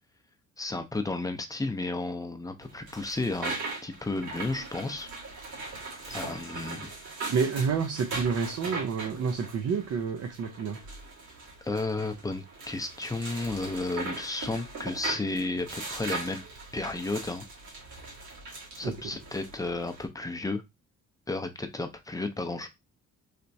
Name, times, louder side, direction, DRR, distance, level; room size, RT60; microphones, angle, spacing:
voice 1, 0.6-3.6 3.8-5.1 6.1-6.9 11.6-16.4 16.7-17.4 18.7-20.6 21.3-22.7, left 2 dB, 10° left, 0.6 m, -33 dB
sound 1, 2.6-20.0, right 3 dB, 75° right, 1.8 m, -40 dB
voice 2, 7.3-10.8 18.8-19.0, right 6 dB, 55° right, 0.6 m, -29 dB
3.4 x 2.9 x 2.6 m
cardioid pair, 90°, 30 cm